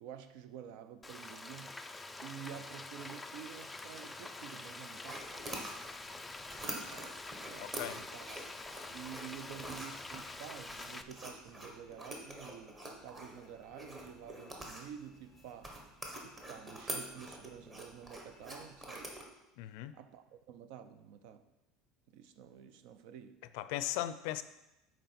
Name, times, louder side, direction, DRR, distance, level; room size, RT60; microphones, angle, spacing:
voice 1, 0.0-1.8 2.2-5.4 6.6-8.3 8.9-15.8 16.2-19.2 19.9-21.4 22.1-23.4, right 9 dB, 65° right, 11 dB, 0.6 m, -50 dB
Frying (food), 1.0-11.0, left 2 dB, 5° left, 0.3 m, -46 dB
sound 1, 5.0-19.2, right 1 dB, 15° right, 1.1 m, -46 dB
voice 2, 7.6-8.0 19.6-19.9 23.5-24.4, left 14 dB, 70° left, 13 dB, 0.4 m, -37 dB
8.0 x 4.5 x 5.8 m, 0.95 s
cardioid pair, 165°, 0 cm